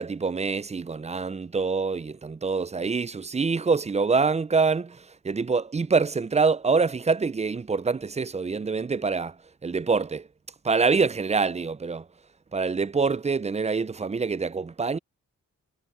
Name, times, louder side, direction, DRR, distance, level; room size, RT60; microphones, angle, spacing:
voice 1, 0.0-5.0 5.2-9.3 9.6-10.2 10.6-12.0 12.5-15.0, right 4 dB, 20° right, 0.4 m, -25 dB
cardioid pair, 65°, 32 cm